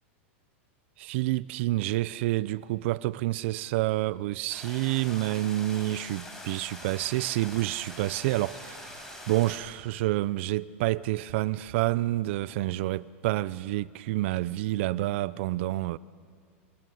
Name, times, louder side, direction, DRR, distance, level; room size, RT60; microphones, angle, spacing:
voice 1, 1.0-16.0, right 17 dB, 60° right, 0.6 m, -28 dB
sound 1, 4.5-9.6, left 1 dB, 5° left, 5.9 m, -44 dB
27.5 x 19.5 x 9.4 m
supercardioid pair, 130°, 7 cm